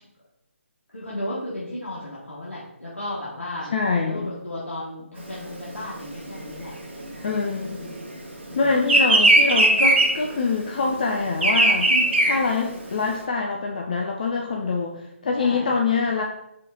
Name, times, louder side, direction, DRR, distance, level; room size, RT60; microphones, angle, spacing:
voice 1, 0.9-7.3 7.6-8.1 8.5-8.7 11.0-11.3 11.9-12.3 15.4-15.7, left 1 dB, 80° left, -8 dB, 1.2 m, -35 dB
voice 2, 3.7-4.3 7.2-7.8 8.5-11.9 12.2-16.2, left 4 dB, 40° left, 1 dB, 0.4 m, -24 dB
Bird vocalization bird call bird song, 5.3-8.2 8.4-13.2, right 2 dB, 55° right, 1.1 m, -19 dB
4.1 x 3.1 x 3.6 m, 0.85 s
figure-of-eight pair, 145°, 7 cm